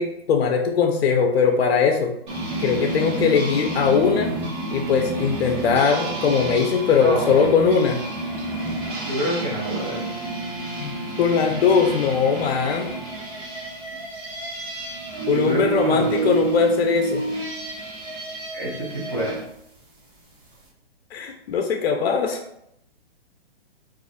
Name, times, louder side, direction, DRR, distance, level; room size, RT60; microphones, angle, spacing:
voice 1, 0.0-2.1 2.6-4.3 4.7-8.0 10.8-12.9 15.3-17.2 21.1-22.4, left 6 dB, 75° left, 3 dB, 0.5 m, -20 dB
sound 1, 2.3-19.4, right 2 dB, 55° right, 1.0 m, -29 dB
voice 2, 7.0-7.5 9.0-10.0 15.3-16.4 18.5-19.4, right 1 dB, 20° right, -7 dB, 0.5 m, -27 dB
2.4 x 2.4 x 2.6 m, 0.76 s
hypercardioid pair, 160°, 31 cm